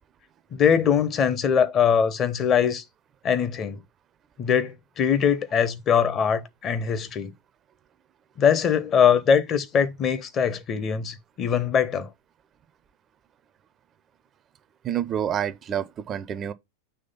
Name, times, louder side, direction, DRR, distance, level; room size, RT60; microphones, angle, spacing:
voice 1, 0.5-2.8 3.2-3.8 4.4-7.3 8.4-12.1, left 7 dB, 30° left, 0.6 m, -22 dB
voice 2, 14.8-16.5, right 9 dB, 25° right, 0.4 m, -28 dB
5.5 x 3.2 x 5.4 m
figure-of-eight pair, 90°, 0 cm